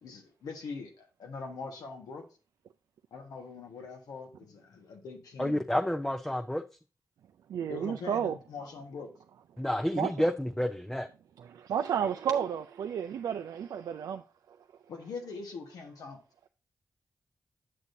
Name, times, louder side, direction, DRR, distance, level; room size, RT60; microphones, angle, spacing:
voice 1, 0.0-2.2 3.1-5.6 7.7-9.1 14.9-16.2, left 4 dB, 85° left, 1.4 m, -42 dB
voice 2, 5.4-6.6 9.6-11.1, left 1 dB, 5° left, 0.6 m, -29 dB
voice 3, 7.5-8.4 10.0-10.1 11.4-14.2, right 8 dB, 85° right, 0.3 m, -32 dB
8.4 x 6.7 x 2.7 m
supercardioid pair, 40°, 6 cm